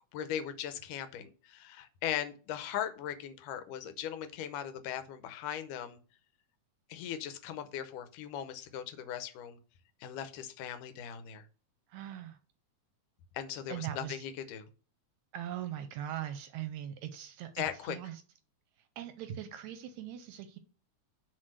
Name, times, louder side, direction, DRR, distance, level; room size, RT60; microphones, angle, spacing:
voice 1, 0.1-6.0 6.9-9.6 10.0-11.5 13.3-14.7 17.6-18.0, left 10 dB, 90° left, 2.3 m, -39 dB
voice 2, 11.9-12.4 13.7-14.2 15.3-18.2 19.0-20.6, right 11 dB, 75° right, 1.8 m, -40 dB
6.5 x 4.0 x 6.3 m
omnidirectional pair, 3.7 m